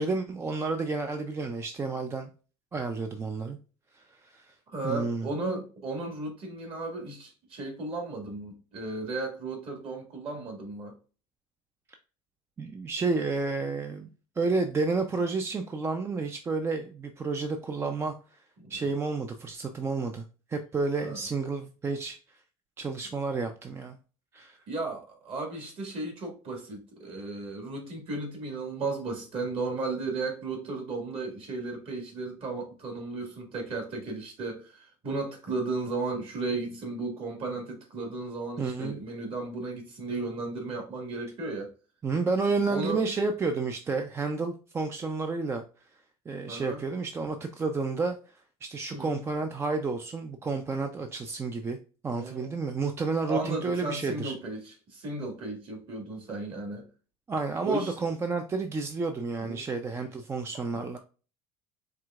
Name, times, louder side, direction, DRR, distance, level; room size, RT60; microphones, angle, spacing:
voice 1, 0.0-2.3 2.7-3.6 3.9-4.6 4.8-5.3 12.6-14.1 14.4-18.4 18.7-22.4 22.8-24.0 24.3-24.6 38.6-39.0 42.0-45.6 46.3-51.8 52.0-54.3 57.3-61.0, right 3 dB, 20° right, 0.4 m, -31 dB
voice 2, 4.7-10.9 18.6-18.7 21.0-21.2 24.7-41.7 42.7-43.0 46.5-46.8 48.9-49.2 52.1-52.5 53.3-56.9 57.6-57.9 59.4-59.6 60.6-61.0, right 3 dB, 45° right, 1.8 m, -35 dB
4.8 x 3.4 x 2.4 m
cardioid pair, 125°, 13 cm